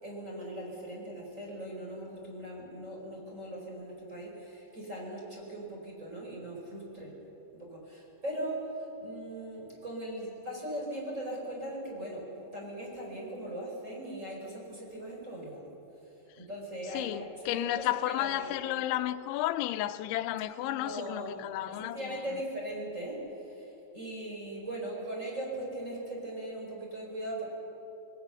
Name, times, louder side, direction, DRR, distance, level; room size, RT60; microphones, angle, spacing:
voice 1, 0.0-7.1 7.5-8.7 9.0-12.3 12.5-15.7 16.4-17.3 17.5-18.5 20.7-21.4 21.7-27.5, right 1 dB, 15° right, 4.9 m, -39 dB
voice 2, 16.9-22.0, left 14 dB, 90° left, 3.1 m, -32 dB
27.5 x 20.0 x 6.9 m
omnidirectional pair, 5.2 m